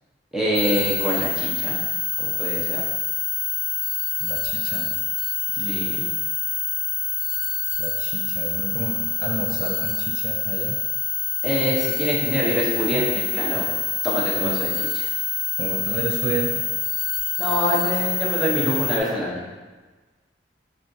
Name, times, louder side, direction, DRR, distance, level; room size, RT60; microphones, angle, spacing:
voice 1, 0.3-1.8 2.2-2.8 5.7-6.1 11.4-13.7 14.0-14.7 14.9-15.1 17.4-19.4, equal, 5° right, -6 dB, 0.7 m, -25 dB
sound 1, 0.5-19.0, left 5 dB, 85° left, 0.5 m, -26 dB
voice 2, 4.2-5.0 5.6-6.1 7.8-10.8 14.4-14.6 15.6-16.7, right 3 dB, 50° right, 1 dB, 0.3 m, -31 dB
5.6 x 2.4 x 2.6 m, 1.3 s
head